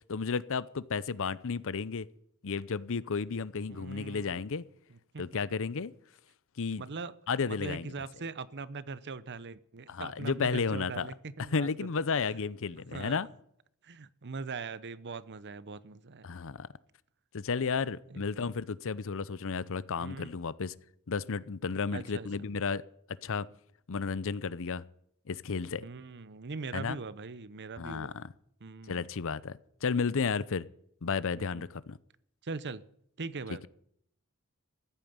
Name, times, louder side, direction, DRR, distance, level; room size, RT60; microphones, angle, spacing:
voice 1, 0.1-2.1 2.4-4.6 5.2-5.9 6.6-6.8 7.3-7.9 9.9-11.1 11.5-13.3 16.2-16.7 17.3-20.7 21.1-22.8 23.2-23.5 23.9-24.8 25.3-25.9 26.7-27.0 27.8-28.3 28.9-30.7 31.0-32.0, left 5 dB, 65° left, 19 dB, 0.7 m, -32 dB
voice 2, 3.7-4.4 4.9-5.2 6.8-7.1 7.5-11.7 12.9-13.2 13.8-16.3 18.1-18.3 20.0-20.4 21.9-22.3 25.8-28.1 28.6-29.0 31.4-31.7 32.4-32.8 33.2-33.7, right 4 dB, 50° right, 17 dB, 0.8 m, -41 dB
15.0 x 9.0 x 9.5 m, 0.69 s
head